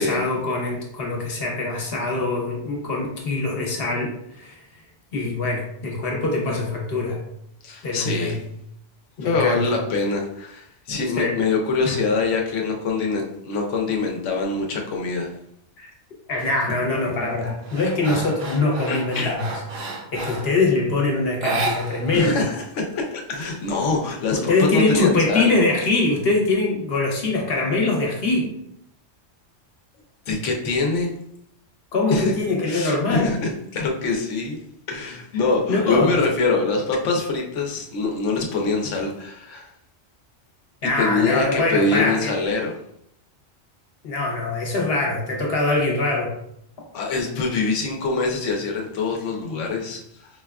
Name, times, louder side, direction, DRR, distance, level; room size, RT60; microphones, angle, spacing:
voice 1, 0.0-4.6 5.1-7.2 7.8-8.4 9.2-9.7 11.1-11.3 11.8-12.0 15.8-15.9 16.3-19.6 20.1-22.5 24.3-28.5 31.9-33.3 35.7-36.2 40.8-42.4 44.0-46.4, left 2 dB, 60° left, -1 dB, 1.0 m, -23 dB
voice 2, 7.6-8.4 9.2-15.3 18.9-19.4 22.1-25.5 30.3-31.1 32.1-32.4 32.6-34.6 34.9-39.7 40.8-42.7 46.9-50.3, left 3 dB, 85° left, 1 dB, 1.0 m, -24 dB
sound 1, 16.4-16.7 17.2-20.6 21.3-22.3 22.6-22.7 23.0-24.0, right 2 dB, 90° right, 1.0 m, -31 dB
4.6 x 2.3 x 2.3 m, 0.75 s
omnidirectional pair, 1.2 m